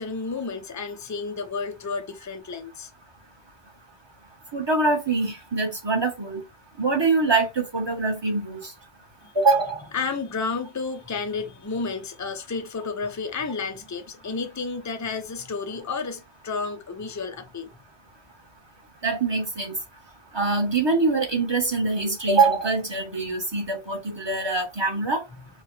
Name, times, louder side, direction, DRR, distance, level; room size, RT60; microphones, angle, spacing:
voice 1, 0.0-2.9 9.2-9.3 9.9-17.7, left 4 dB, 30° left, 0.3 m, -31 dB
voice 2, 4.5-6.4 6.8-8.7 9.3-9.8 19.0-19.7 20.3-25.2, right 3 dB, 25° right, 1.2 m, -24 dB
4.7 x 2.3 x 3.2 m
omnidirectional pair, 1.2 m